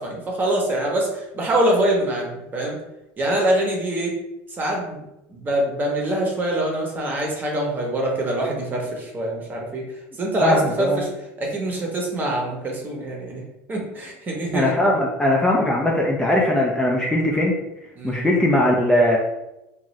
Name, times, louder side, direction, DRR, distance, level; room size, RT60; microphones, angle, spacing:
voice 1, 0.0-2.8 3.2-4.1 4.5-9.8 10.2-11.1 11.4-13.4 13.7-14.7 18.0-18.2, right 1 dB, 25° right, 0 dB, 0.8 m, -24 dB
voice 2, 10.4-11.0 14.5-17.5 18.0-19.2, left 1 dB, 10° left, -2 dB, 0.4 m, -19 dB
2.6 x 2.4 x 3.1 m, 0.91 s
supercardioid pair, 120°, 7 cm